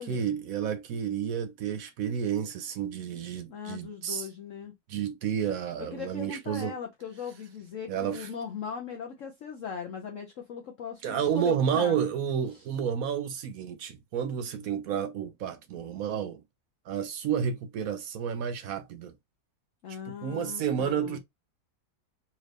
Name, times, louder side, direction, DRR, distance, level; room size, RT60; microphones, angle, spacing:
voice 1, 0.0-4.3 4.9-6.7 7.9-8.3 11.0-16.4 16.9-19.1 20.2-21.2, right 8 dB, 65° right, 0.9 m, -30 dB
voice 2, 3.5-4.7 5.8-12.0 12.5-12.7 19.8-21.2, left 7 dB, 60° left, 0.9 m, -39 dB
4.3 x 2.5 x 3.2 m
omnidirectional pair, 1.9 m